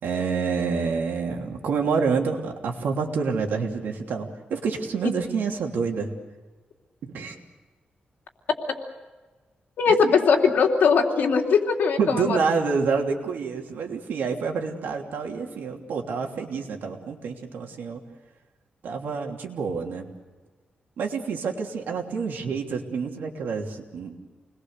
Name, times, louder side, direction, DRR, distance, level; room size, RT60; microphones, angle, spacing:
voice 1, 0.0-6.1 7.0-7.4 9.9-10.2 12.0-18.0 18.8-20.1 21.0-24.3, right 5 dB, 85° right, 1 dB, 3.1 m, -28 dB
voice 2, 9.8-12.4, left 5 dB, 75° left, 1 dB, 3.1 m, -20 dB
28.5 x 21.0 x 6.7 m, 1.3 s
wide cardioid pair, 150°, 3 cm